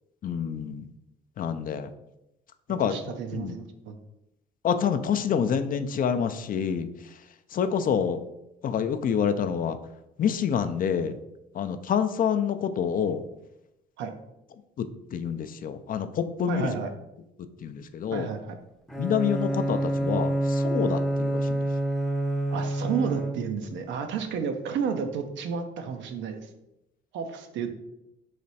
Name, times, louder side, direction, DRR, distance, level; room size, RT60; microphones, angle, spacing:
voice 1, 0.2-0.9 1.4-1.9 2.7-3.6 4.6-6.9 7.5-8.2 8.6-9.8 10.2-11.2 11.5-13.2 14.8-16.7 17.6-18.3 19.0-21.6, left 7 dB, 45° left, 10 dB, 0.4 m, -27 dB
voice 2, 2.8-4.0 14.0-14.1 16.5-16.9 18.1-18.6 22.5-26.5 27.1-27.7, right 6 dB, 75° right, 6 dB, 0.6 m, -31 dB
Bowed string instrument, 18.9-23.7, right 1 dB, ahead, 0.6 m, -27 dB
3.3 x 3.0 x 4.1 m, 0.88 s
supercardioid pair, 70°, 19 cm